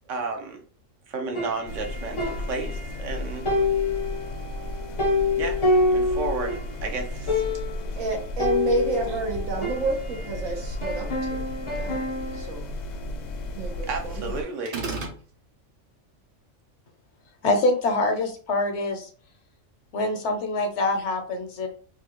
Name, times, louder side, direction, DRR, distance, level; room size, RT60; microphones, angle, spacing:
voice 1, 0.1-0.6 1.1-3.5 5.4-5.6 5.9-7.4 13.9-14.8, right 3 dB, 75° right, 1.1 m, -32 dB
sound 1, 1.4-3.1 3.5-6.7 7.0-7.1 7.3-7.9 8.4-10.4 10.8-12.5, left 2 dB, 30° left, 0.6 m, -27 dB
sound 2, 1.7-14.4, left 1 dB, 80° left, 0.3 m, -34 dB
voice 2, 7.9-12.1 12.3-12.7 13.6-14.3, right 3 dB, 90° right, 1.4 m, -30 dB
sound 3, 14.6-15.2, right 3 dB, 40° right, 0.6 m, -30 dB
voice 3, 17.4-19.1 19.9-21.7, left 2 dB, 65° left, 1.0 m, -25 dB
3.3 x 2.3 x 2.9 m
omnidirectional pair, 1.3 m